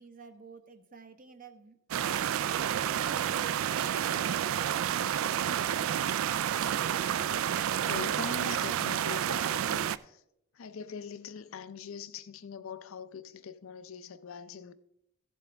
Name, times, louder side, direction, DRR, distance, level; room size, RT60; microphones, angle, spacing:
voice 1, 0.0-2.3 2.9-4.1, right 4 dB, 45° right, 0.9 m, -50 dB
sound 1, 1.9-10.0, right 9 dB, 70° right, 0.3 m, -30 dB
voice 2, 7.9-10.2 10.5-14.7, left 6 dB, 70° left, 0.5 m, -42 dB
15.0 x 7.4 x 3.4 m
head